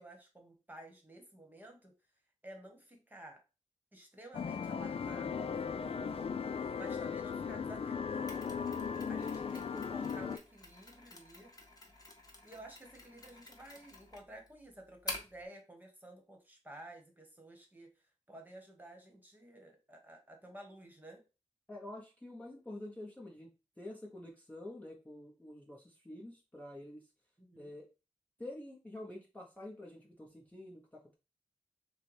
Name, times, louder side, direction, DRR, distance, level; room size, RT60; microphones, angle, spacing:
voice 1, 0.0-1.9 2.4-3.4 3.9-5.5 6.5-8.2 9.1-11.5 12.4-17.9 18.3-21.2 27.4-27.8, right 1 dB, 15° right, 3 dB, 1.4 m, -53 dB
sound 1, 4.3-10.4, left 6 dB, 50° left, 0.4 m, -37 dB
Mechanisms, 8.3-15.4, left 2 dB, 30° left, 1.3 m, -49 dB
voice 2, 8.9-9.9 21.7-23.5 23.8-27.0 27.6-27.9 28.4-31.1, left 1 dB, 10° left, -3 dB, 1.0 m, -48 dB
6.6 x 2.3 x 3.3 m, 0.30 s
wide cardioid pair, 105°, 12 cm